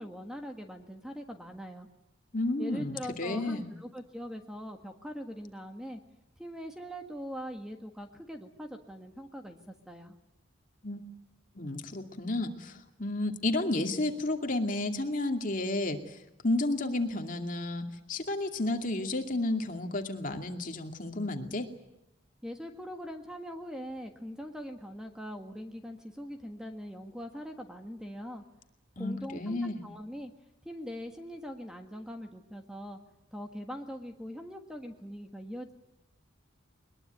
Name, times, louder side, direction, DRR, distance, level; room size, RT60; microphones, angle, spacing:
voice 1, 0.0-1.9 2.6-6.0 6.4-10.1 22.4-28.4 29.0-30.3 30.6-33.0 33.3-35.7, equal, 5° right, 5 dB, 1.5 m, -42 dB
voice 2, 2.3-3.7 10.8-11.0 11.5-16.1 16.4-21.7 29.0-29.8, left 2 dB, 45° left, 4 dB, 2.5 m, -32 dB
22.0 x 21.5 x 9.4 m, 0.88 s
head